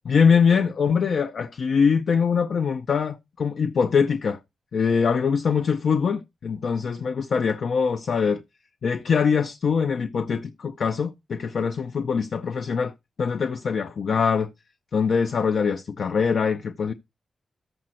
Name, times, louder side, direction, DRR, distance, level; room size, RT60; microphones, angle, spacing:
voice 1, 0.1-4.4 4.7-8.4 8.8-12.9 13.2-14.5 14.9-16.9, left 6 dB, 60° left, 0.5 m, -23 dB
14.0 x 5.0 x 4.3 m
wide cardioid pair, 145°, 0 cm